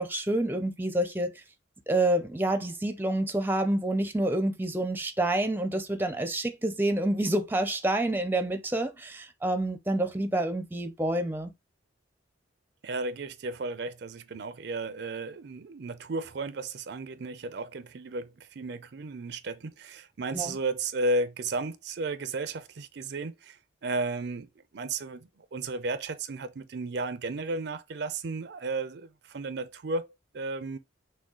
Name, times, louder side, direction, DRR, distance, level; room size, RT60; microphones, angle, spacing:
voice 1, 0.0-1.3 1.9-11.5 20.3-20.6, right 1 dB, 10° right, 0.5 m, -28 dB
voice 2, 12.8-24.5 24.7-30.8, right 2 dB, 60° right, 0.5 m, -34 dB
6.1 x 2.3 x 3.7 m
head